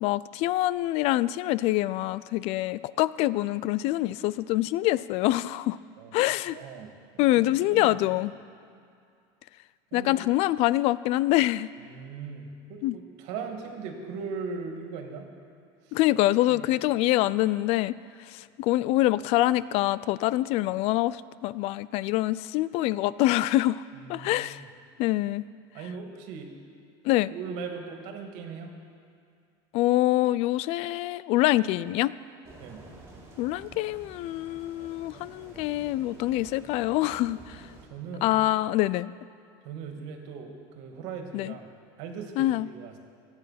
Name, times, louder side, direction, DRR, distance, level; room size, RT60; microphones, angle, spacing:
voice 1, 0.0-5.8 6.1-6.6 7.2-8.3 9.9-11.7 12.8-13.0 15.9-18.0 18.3-23.8 24.1-24.6 25.0-25.4 27.0-27.3 29.7-32.1 33.4-37.6 38.2-39.1 41.3-41.5 42.4-42.7, left 16 dB, 55° left, 18 dB, 0.4 m, -25 dB
voice 2, 6.5-6.9 7.5-8.0 9.9-10.2 11.8-15.3 15.9-16.0 16.5-16.7 23.9-24.6 25.7-26.5 27.3-28.7 32.6-32.8 37.9-38.3 39.6-41.7 42.0-43.0, right 5 dB, 65° right, 4 dB, 2.3 m, -39 dB
sound 1, 32.4-37.9, right 2 dB, 20° right, 4.8 m, -49 dB
23.5 x 8.9 x 5.9 m, 2.3 s
supercardioid pair, 130°, 12 cm